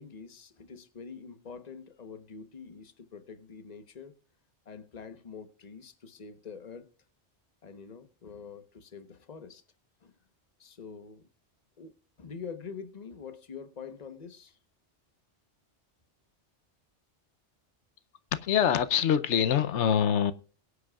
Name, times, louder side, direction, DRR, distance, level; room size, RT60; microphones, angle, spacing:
voice 1, 0.0-4.1 4.7-6.9 7.6-9.6 10.0-10.1 10.6-11.2 11.8-11.9 12.2-14.6, left 6 dB, 40° left, 1.1 m, -45 dB
voice 2, 18.3-20.3, left 9 dB, 90° left, 1.0 m, -24 dB
22.5 x 8.2 x 2.3 m
omnidirectional pair, 1.2 m